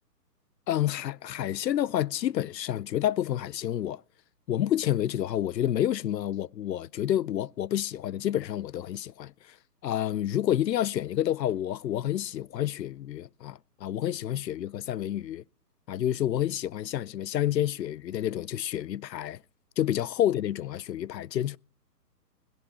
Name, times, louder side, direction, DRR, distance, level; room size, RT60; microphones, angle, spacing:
voice 1, 0.7-4.0 4.5-9.6 9.8-15.4 15.9-19.4 19.8-21.6, left 11 dB, 80° left, 0.6 m, -29 dB
20.5 x 17.0 x 2.9 m
hypercardioid pair, 165°, 49 cm